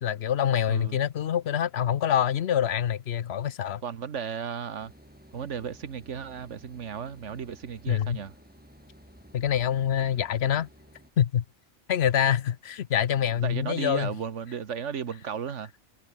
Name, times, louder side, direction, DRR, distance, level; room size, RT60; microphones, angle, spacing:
voice 1, 0.0-3.8 7.9-8.2 9.3-10.7 11.2-11.4 11.9-14.1, left 9 dB, 65° left, 1.0 m, -25 dB
voice 2, 0.7-1.0 3.8-4.9 5.3-8.3 13.4-15.7, right 7 dB, 80° right, 1.6 m, -35 dB
sound 1, 4.8-11.1, equal, 5° right, 7.1 m, -53 dB
omnidirectional pair, 1.2 m